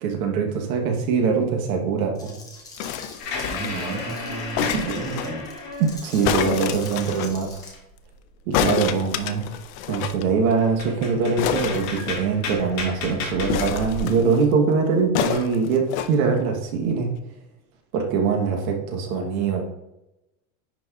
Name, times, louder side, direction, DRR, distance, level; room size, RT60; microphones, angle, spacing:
voice 1, 0.0-2.3 4.7-4.8 5.8-7.6 8.5-9.5 9.9-17.1 17.9-19.6, right 5 dB, 85° right, 2 dB, 1.1 m, -23 dB
sound 1, 2.1-7.7, left 3 dB, 10° left, 0.7 m, -44 dB
sound 2, 2.8-3.9 4.6-5.3 6.2-7.3 8.5-10.2 10.5-10.6 10.8-11.0 11.4-12.6 13.5-14.4 15.1-16.1 16.8-16.9, left 9 dB, 75° left, 0.6 m, -27 dB
sound 3, 3.2-6.2 6.7-8.2 8.6-8.7 9.0-9.5 10.2-10.3 10.6-14.0, left 3 dB, 40° left, 2.0 m, -33 dB
voice 2, 3.5-5.5, right 3 dB, 35° right, 0 dB, 1.4 m, -32 dB
10.5 x 4.1 x 2.3 m, 0.92 s
supercardioid pair, 175°, 41 cm